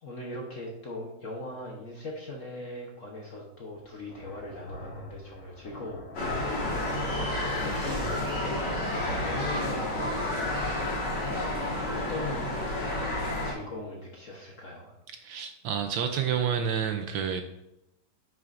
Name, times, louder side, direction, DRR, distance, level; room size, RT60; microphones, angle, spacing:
voice 1, 0.0-8.5 8.8-11.6 11.9-12.5 13.4-14.9, left 1 dB, 55° left, -1 dB, 0.9 m, -41 dB
sound 1, 3.7-10.6 10.9-11.8 12.1-13.8, left 2 dB, 90° left, 2.6 m, -45 dB
sound 2, 6.1-13.5, left 1 dB, 70° left, 3.5 m, -30 dB
voice 2, 15.2-17.4, right 8 dB, 75° right, 7 dB, 1.2 m, -29 dB
9.3 x 5.8 x 2.5 m, 0.85 s
omnidirectional pair, 2.4 m